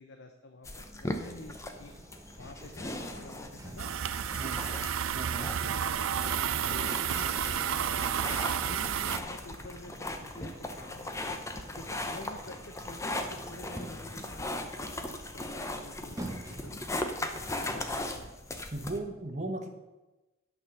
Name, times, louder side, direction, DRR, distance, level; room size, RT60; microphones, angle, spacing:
voice 1, 0.0-1.9 2.4-3.9 4.4-4.8 5.6-7.7 8.1-11.4 11.7-16.8 17.2-18.6, left 2 dB, 55° left, 6 dB, 0.7 m, -48 dB
sound 1, 0.7-19.0, left 1 dB, 15° left, 0.7 m, -39 dB
sound 2, 0.8-17.2, right 1 dB, 15° right, 0.8 m, -50 dB
sound 3, 3.8-9.2, right 9 dB, 85° right, 0.5 m, -31 dB
voice 2, 5.1-5.5 18.7-19.7, right 2 dB, 35° right, 5 dB, 1.1 m, -36 dB
9.3 x 5.7 x 6.9 m, 1.1 s
head